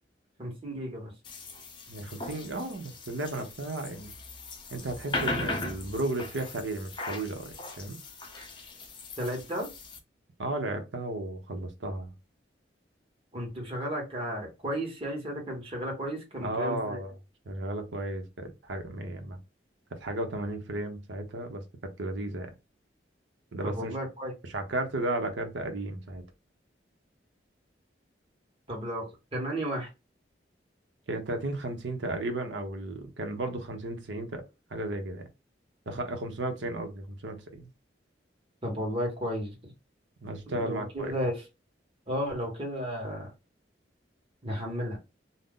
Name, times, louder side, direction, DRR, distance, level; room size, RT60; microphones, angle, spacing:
voice 1, 0.4-1.1 9.2-9.7 13.3-17.0 23.6-24.3 28.7-29.9 38.6-39.5 40.5-41.4 42.1-43.3 44.4-45.0, equal, 30° right, 1.2 m, -33 dB
sound 1, 1.2-10.0, left 3 dB, 25° left, 0.5 m, -38 dB
voice 2, 1.9-4.1 4.7-8.0 10.4-12.1 16.4-17.1 17.5-19.4 20.0-21.6 22.0-22.5 23.5-24.0 24.4-26.2 31.1-34.4 34.7-35.2 35.9-37.6 40.2-41.1, right 2 dB, 90° right, 0.8 m, -34 dB
2.6 x 2.1 x 3.6 m
head